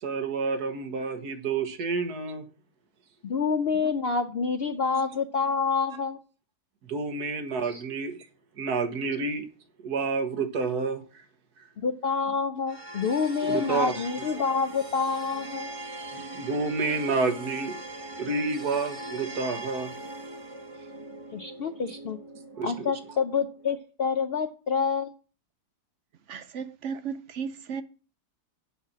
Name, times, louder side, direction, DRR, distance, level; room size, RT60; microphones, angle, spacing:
voice 1, 0.0-2.4 6.9-8.3 8.6-9.5 9.8-11.0 13.4-14.1 16.1-17.8 18.2-19.9 22.5-22.9, right 4 dB, 75° right, 1.9 m, -29 dB
voice 2, 3.2-6.2 7.6-7.8 11.8-15.7 21.3-22.2 22.6-25.1, left 5 dB, 60° left, 0.6 m, -27 dB
sound 1, 12.7-23.7, right 1 dB, 25° right, 1.1 m, -41 dB
voice 3, 26.3-27.8, right 6 dB, 60° right, 0.8 m, -35 dB
8.1 x 5.6 x 7.3 m
omnidirectional pair, 1.7 m